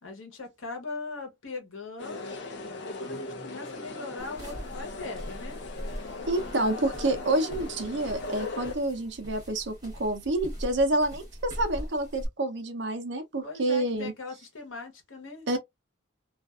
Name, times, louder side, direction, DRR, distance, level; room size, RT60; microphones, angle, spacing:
voice 1, 0.0-2.4 2.8-5.6 13.4-15.6, left 3 dB, 85° left, 1.0 m, -40 dB
sound 1, 2.0-8.7, left 3 dB, 60° left, 0.7 m, -39 dB
sound 2, 4.2-12.3, equal, 20° right, 0.9 m, -41 dB
voice 2, 6.3-14.1 15.5-15.6, right 1 dB, 60° right, 0.6 m, -28 dB
2.5 x 2.4 x 2.3 m
head